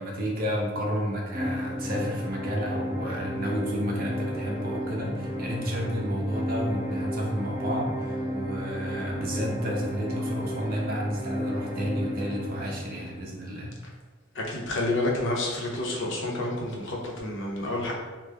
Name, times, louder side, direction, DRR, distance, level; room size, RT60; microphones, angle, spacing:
voice 1, 0.0-13.7, equal, 45° right, -2 dB, 0.7 m, -31 dB
sound 1, 1.3-13.3, equal, 10° right, 0.7 m, -32 dB
voice 2, 14.3-17.9, left 2 dB, 65° left, -1 dB, 0.7 m, -29 dB
3.5 x 2.1 x 3.3 m, 1.3 s
head